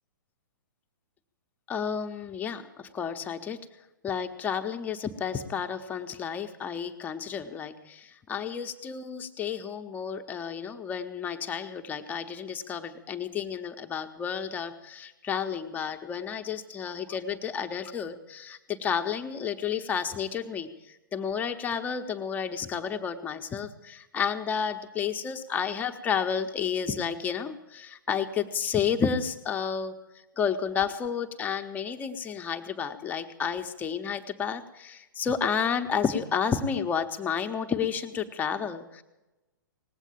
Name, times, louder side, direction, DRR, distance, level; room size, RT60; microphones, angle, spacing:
voice 1, 1.7-3.6 4.0-39.0, left 7 dB, 15° left, 7 dB, 0.9 m, -31 dB
19.0 x 8.2 x 8.6 m, 1.0 s
figure-of-eight pair, 115°, 11 cm